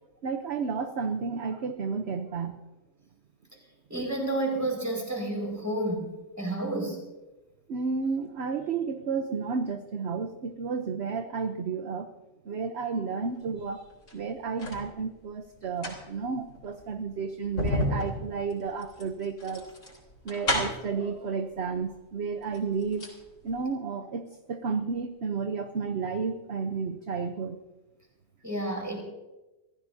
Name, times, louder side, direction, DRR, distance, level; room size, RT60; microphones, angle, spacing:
voice 1, 0.2-2.6 7.7-12.1 12.4-13.9 14.1-19.7 20.2-23.1 23.4-27.6, right 5 dB, 55° right, 7 dB, 1.1 m, -32 dB
voice 2, 3.9-7.0 28.4-29.0, right 1 dB, 10° right, 0 dB, 5.1 m, -30 dB
sound 1, 13.9-14.9 15.6-21.0 21.9-22.0 22.4-23.2 23.5-23.6, left 1 dB, 65° left, 4.2 m, -32 dB
26.5 x 15.0 x 2.8 m, 1.0 s
omnidirectional pair, 1.4 m